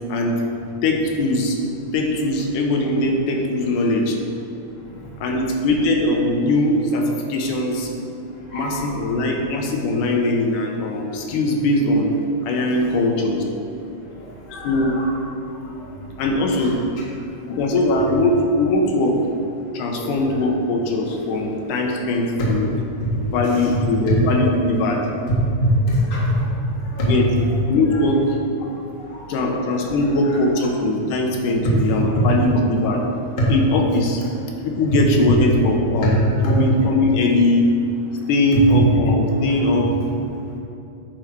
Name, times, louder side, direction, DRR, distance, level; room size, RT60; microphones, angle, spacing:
voice 1, 0.8-1.6 1.9-4.2 5.2-7.9 8.5-12.1 12.5-13.4 14.6-15.0 16.2-16.8 17.5-19.2 19.7-22.7 23.3-25.1 27.0-27.2 27.7-28.2 29.3-33.0 33.5-34.2 34.6-37.7 38.3-39.9, left 1 dB, 80° left, 1 dB, 2.3 m, -20 dB
voice 2, 8.5-8.9 14.5-15.2 16.5-16.8 18.0-18.1 20.0-20.2 22.4-22.5 23.0-23.1 23.4-23.7 25.9-26.5 26.9-27.1 27.4-27.5 27.9-28.1 29.0-30.4 33.4-33.5 34.8-34.9 36.4-36.6 36.9-37.0 38.7-38.8, equal, 25° left, -6 dB, 1.2 m, -25 dB
8.9 x 5.6 x 4.6 m, 2.7 s
omnidirectional pair, 3.6 m